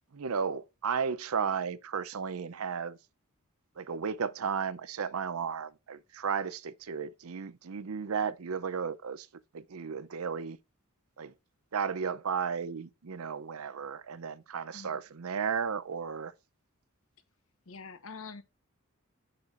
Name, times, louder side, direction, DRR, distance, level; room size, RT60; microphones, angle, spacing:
voice 1, 0.1-3.0 3.8-9.3 9.5-10.6 11.2-11.3 11.7-16.3, right 6 dB, 75° right, 0.6 m, -34 dB
voice 2, 17.7-18.4, left 4 dB, 70° left, 1.1 m, -45 dB
6.8 x 6.6 x 2.5 m
head